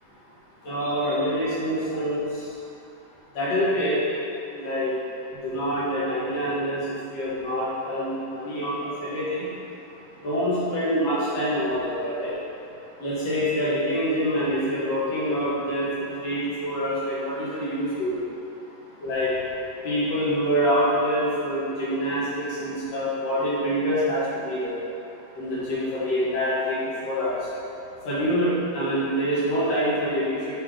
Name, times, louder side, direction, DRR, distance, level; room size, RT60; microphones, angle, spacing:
voice 1, 0.6-2.2 3.3-4.0 4.5-4.9 5.4-6.8 7.1-9.5 10.2-12.3 13.0-15.9 16.2-18.1 19.0-19.3 19.8-24.7 25.4-27.3 28.0-30.6, equal, 50° left, -10 dB, 2.6 m, -26 dB
8.2 x 4.3 x 5.0 m, 2.8 s
omnidirectional pair, 4.2 m